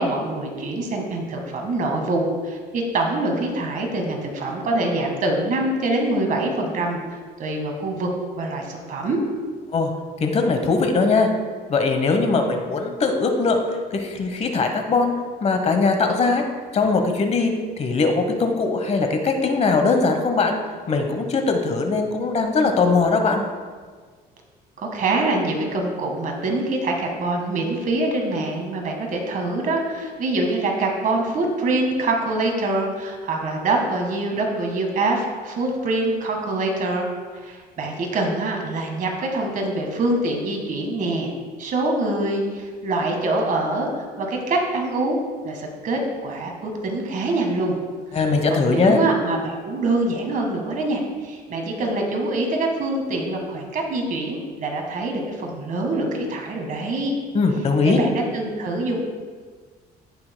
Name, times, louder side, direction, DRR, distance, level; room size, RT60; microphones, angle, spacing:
voice 1, 0.0-8.1 8.4-9.2 24.8-37.1 37.4-41.3 41.6-45.2 45.4-47.8 48.6-57.2 57.8-59.0, right 2 dB, 50° right, 2 dB, 1.6 m, -24 dB
voice 2, 10.2-11.3 11.7-15.1 15.4-16.4 16.7-20.6 20.9-23.4 48.1-49.0 57.3-58.0, left 4 dB, 40° left, 5 dB, 1.0 m, -20 dB
16.5 x 5.6 x 2.2 m, 1.5 s
cardioid pair, 110°, 17 cm